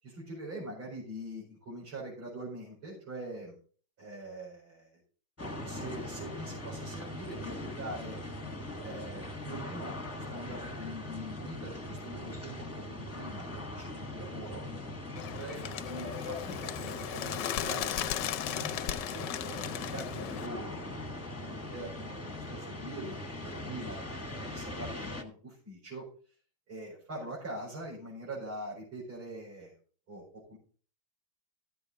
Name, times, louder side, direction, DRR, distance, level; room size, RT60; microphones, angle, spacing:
voice 1, 0.0-3.6 4.0-5.0 5.7-8.2 8.8-14.6 15.4-26.3 26.7-29.7 30.1-30.6, right 1 dB, 70° right, -8 dB, 5.7 m, -43 dB
sound 1, 5.4-25.2, left 1 dB, 10° left, 1.0 m, -41 dB
Bird, 15.2-20.5, left 11 dB, 70° left, 1.1 m, -36 dB
14.0 x 8.0 x 4.0 m, 0.43 s
omnidirectional pair, 2.3 m